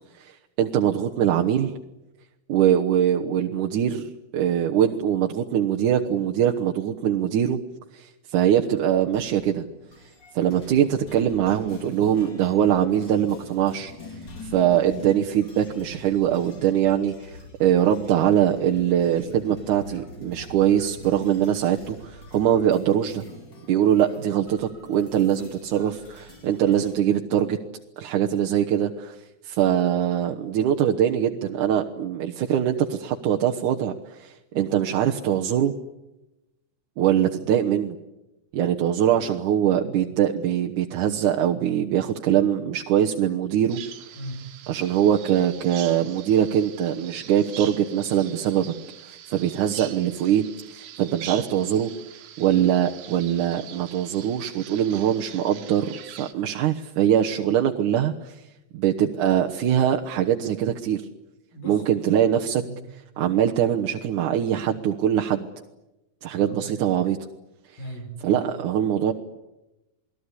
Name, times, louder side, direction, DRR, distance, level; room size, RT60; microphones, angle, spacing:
voice 1, 0.3-1.7 2.5-7.6 7.9-9.6 10.3-13.9 14.5-23.2 23.7-27.6 28.0-29.2 29.4-35.7 37.0-38.0 38.5-43.8 44.7-48.7 49.1-50.4 50.7-51.9 52.4-58.4 58.7-61.0 61.6-62.6 63.2-65.5 66.2-67.2 68.2-69.1, right 10 dB, 65° right, 2 dB, 2.4 m, -22 dB
sound 1, 9.1-27.0, left 2 dB, 30° left, 3.9 m, -44 dB
Bird vocalization bird call bird song, 43.7-56.3, right 10 dB, 80° right, 3.5 m, -43 dB
voice 2, 44.2-44.6 61.5-61.8 62.6-62.9 66.4-66.6 67.8-68.5, right 1 dB, 65° left, 5 dB, 7.1 m, -38 dB
28.5 x 20.5 x 9.9 m, 0.98 s
omnidirectional pair, 4.3 m